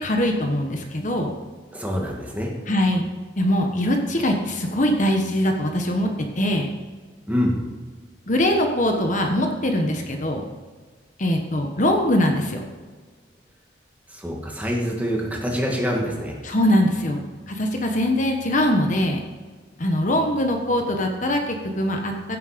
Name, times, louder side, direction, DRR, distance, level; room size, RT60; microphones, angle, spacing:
voice 1, 0.0-1.3 2.7-3.1 3.4-6.7 8.3-10.4 11.2-12.6 16.4-19.2 19.8-22.4, left 1 dB, 40° left, 3 dB, 1.2 m, -22 dB
voice 2, 1.7-2.5 7.3-7.6 14.1-16.3, equal, 10° right, -1 dB, 2.0 m, -25 dB
16.0 x 7.5 x 5.1 m, 1.5 s
head